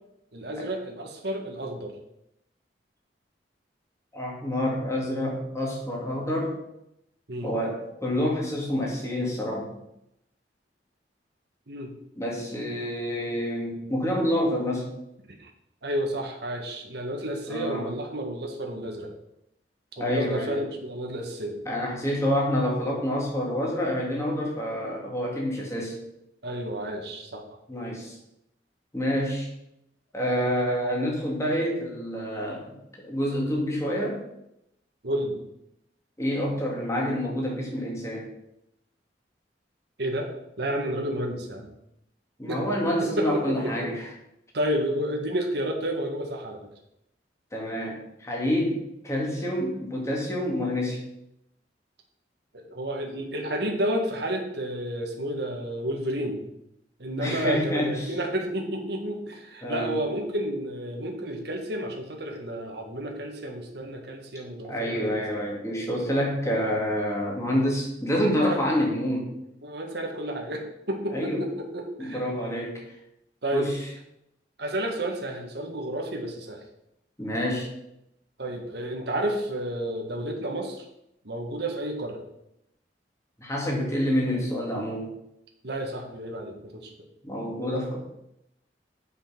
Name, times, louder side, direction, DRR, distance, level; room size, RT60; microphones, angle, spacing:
voice 1, 0.3-1.9 7.3-7.5 11.7-11.9 15.3-15.5 15.8-19.1 20.0-21.6 26.4-27.4 35.0-35.4 40.0-41.7 42.5-42.6 43.2-43.9 44.5-46.6 52.5-56.5 57.0-65.2 66.1-66.2 68.5-68.6 69.6-72.2 73.4-73.7 74.6-76.6 78.4-80.8 81.2-82.2 85.6-86.9, right 1 dB, 65° right, 2 dB, 1.5 m, -31 dB
voice 2, 4.1-6.6 7.4-9.7 12.2-14.9 17.5-17.9 20.0-20.6 21.6-25.9 27.7-28.2 28.9-29.5 30.1-32.7 33.0-34.2 36.2-38.3 42.4-44.1 47.5-51.0 57.2-58.1 59.6-60.0 64.7-69.3 71.1-71.5 72.0-72.8 73.5-73.9 77.2-77.7 83.4-85.1 87.2-88.0, equal, 15° left, -2 dB, 2.6 m, -27 dB
8.3 x 5.7 x 5.8 m, 0.82 s
head